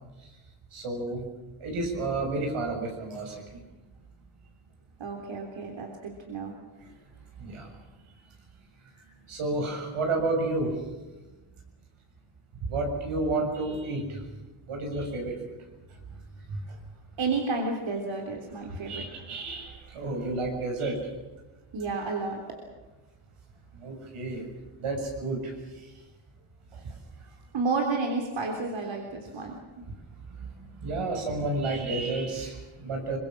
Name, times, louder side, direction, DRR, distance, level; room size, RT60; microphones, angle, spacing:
voice 1, 0.7-1.2 1.6-3.3 7.4-7.6 9.3-10.7 12.7-14.2 14.7-15.3 16.5-16.6 18.9-21.0 23.8-24.4 24.8-25.5 30.8-33.2, right 2 dB, 85° right, 2 dB, 6.8 m, -30 dB
voice 2, 5.0-6.5 17.2-19.0 21.7-22.4 27.5-29.6, right 3 dB, 65° right, 2 dB, 3.7 m, -31 dB
24.0 x 22.5 x 7.5 m, 1.1 s
cardioid pair, 95°, 49 cm